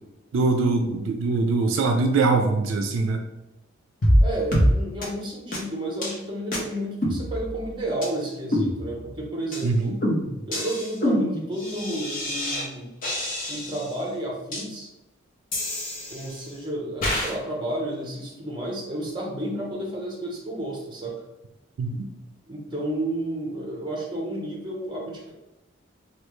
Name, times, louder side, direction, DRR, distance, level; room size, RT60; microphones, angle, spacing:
voice 1, 0.3-3.2 9.6-10.0 21.8-22.1, right 3 dB, 75° right, 5 dB, 0.3 m, -22 dB
sound 1, 4.0-4.2 4.5-4.7 5.0-5.1 5.5-5.6 6.0-6.2 6.5-6.6 7.0-7.7 8.0-8.1 8.5-9.1 9.5-9.7 10.0-12.7 13.0-13.9 14.5-14.6 15.5-16.5 17.0-17.3, equal, 45° left, 0.7 m, -25 dB
voice 2, 4.2-10.0 10.4-12.9 13.5-14.9 16.1-21.2 22.5-25.3, right 1 dB, 25° right, -1 dB, 0.7 m, -31 dB
3.2 x 2.3 x 3.0 m, 0.98 s
head